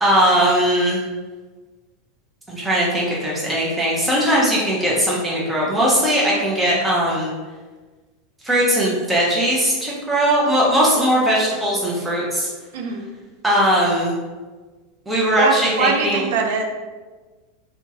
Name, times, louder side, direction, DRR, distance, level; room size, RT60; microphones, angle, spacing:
voice 1, 0.0-1.0 2.5-7.3 8.4-12.5 13.4-14.1 15.1-16.3, equal, 10° right, -6 dB, 0.8 m, -19 dB
voice 2, 12.7-13.1 15.4-16.6, right 4 dB, 70° right, 3 dB, 0.4 m, -22 dB
2.7 x 2.3 x 2.8 m, 1.3 s
hypercardioid pair, 100°, 0 cm